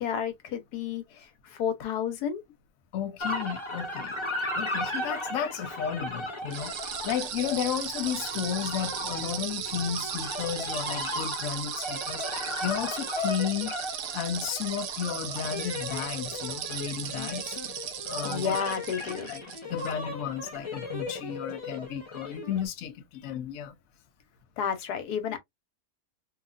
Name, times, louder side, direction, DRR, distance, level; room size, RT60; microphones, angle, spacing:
voice 1, 0.0-2.4 18.2-19.3 24.6-25.4, left 8 dB, 90° left, 1.4 m, -31 dB
voice 2, 2.9-4.2 4.5-13.8 14.1-17.6 18.0-18.6 19.3-23.8, left 9 dB, 70° left, 1.0 m, -33 dB
sound 1, 3.2-22.7, left 2 dB, 40° left, 0.4 m, -36 dB
sound 2, 6.5-19.9, right 10 dB, 65° right, 0.9 m, -37 dB
3.0 x 2.8 x 2.4 m
omnidirectional pair, 1.6 m